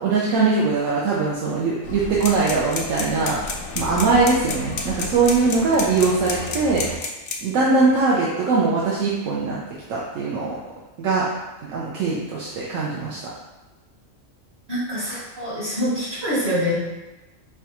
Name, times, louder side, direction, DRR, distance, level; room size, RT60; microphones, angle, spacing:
voice 1, 0.0-3.4 3.8-6.8 7.4-9.6 9.9-10.6 11.0-11.3 11.6-13.2, right 4 dB, 75° right, -5 dB, 1.0 m, -21 dB
sound 1, 1.8-7.0, left 3 dB, 85° left, 1.0 m, -35 dB
sound 2, 2.2-7.5, left 5 dB, 65° left, 0.6 m, -29 dB
voice 2, 14.7-16.7, equal, 50° right, -8 dB, 1.7 m, -25 dB
5.4 x 2.4 x 2.9 m, 1.1 s
omnidirectional pair, 1.4 m